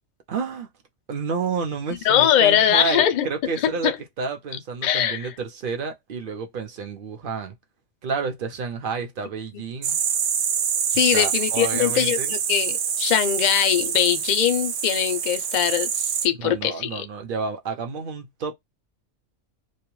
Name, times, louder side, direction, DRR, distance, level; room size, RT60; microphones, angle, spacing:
voice 1, 0.3-0.7 1.1-3.9 4.2-7.5 8.0-10.0 11.1-12.3 16.4-18.5, right 5 dB, 55° right, 0.7 m, -30 dB
voice 2, 2.0-4.0 4.8-5.3 10.9-17.1, left 10 dB, 65° left, 0.4 m, -22 dB
sound 1, 9.8-16.3, right 7 dB, 90° right, 0.9 m, -26 dB
2.2 x 2.2 x 3.0 m
omnidirectional pair, 1.3 m